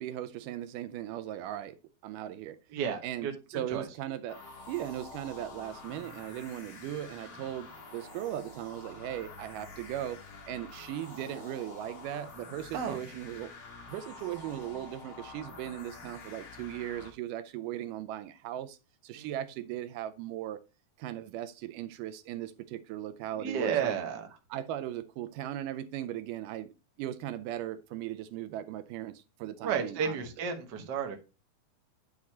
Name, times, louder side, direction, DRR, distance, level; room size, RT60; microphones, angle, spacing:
voice 1, 0.0-2.6 3.0-10.2 10.5-13.5 13.9-18.8 19.0-20.6 21.0-24.0 24.5-26.7 27.0-30.2, right 12 dB, 80° right, 2.1 m, -38 dB
voice 2, 2.7-3.3 3.7-3.9 12.7-13.0 19.1-19.3 23.4-24.3 29.6-31.2, right 7 dB, 55° right, 1.2 m, -32 dB
sound 1, 4.3-17.1, left 3 dB, 45° left, 3.0 m, -48 dB
9.4 x 4.3 x 4.2 m
omnidirectional pair, 3.9 m